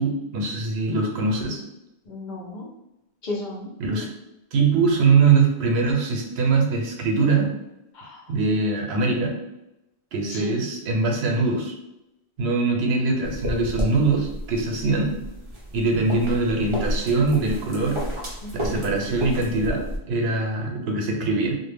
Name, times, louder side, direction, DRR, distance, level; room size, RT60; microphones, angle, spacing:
voice 1, 0.0-1.6 3.8-4.1 4.5-7.5 8.3-9.4 10.1-11.7 12.4-15.2 15.7-18.0 18.5-21.5, right 4 dB, 80° right, 1 dB, 0.8 m, -22 dB
voice 2, 2.1-2.7 3.2-3.7 7.9-8.3 10.3-10.6 18.4-18.7, left 2 dB, 55° left, -2 dB, 0.7 m, -34 dB
sound 1, 13.2-20.0, equal, 40° right, 0.5 m, -31 dB
2.1 x 2.1 x 3.3 m, 0.90 s
omnidirectional pair, 1.0 m